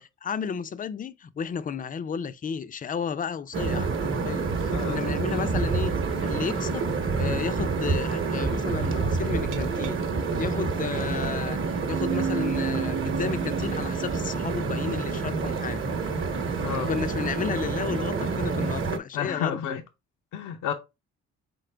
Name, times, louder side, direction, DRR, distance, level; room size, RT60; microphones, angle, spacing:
voice 1, 0.0-5.9 6.2-10.0 10.4-11.6 11.9-15.8 16.8-19.7, left 6 dB, 30° left, 0.4 m, -33 dB
sound 1, 3.5-19.0, right 4 dB, 40° right, 0.9 m, -28 dB
voice 2, 4.7-5.1 16.5-16.9 19.1-19.8 20.3-20.7, left 8 dB, 85° left, 0.7 m, -31 dB
Glass, 9.5-15.4, right 7 dB, 80° right, 0.6 m, -35 dB
4.1 x 3.8 x 3.3 m
cardioid pair, 90°, 30 cm